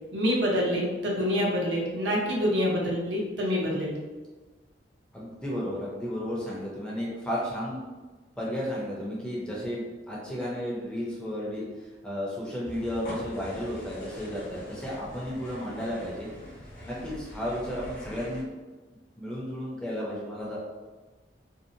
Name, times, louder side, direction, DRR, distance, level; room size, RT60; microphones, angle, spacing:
voice 1, 0.1-4.0, equal, 80° right, -3 dB, 0.6 m, -26 dB
voice 2, 5.1-7.8 8.4-16.3 16.8-18.5 19.2-20.6, equal, 5° left, -6 dB, 0.5 m, -33 dB
sound 1, 12.6-18.4, left 1 dB, 45° left, 0.7 m, -43 dB
2.7 x 2.0 x 2.6 m, 1.3 s
head